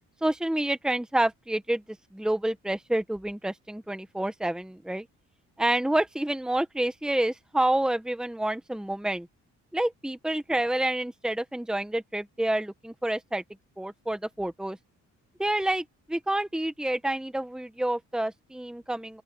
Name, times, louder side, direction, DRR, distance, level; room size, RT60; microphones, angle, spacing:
voice 1, 0.2-1.8 2.1-5.1 5.6-9.3 9.7-13.4 13.8-14.8 15.4-19.2, right 1 dB, ahead, 1.4 m, -28 dB
open air
cardioid pair, 90°, 30 cm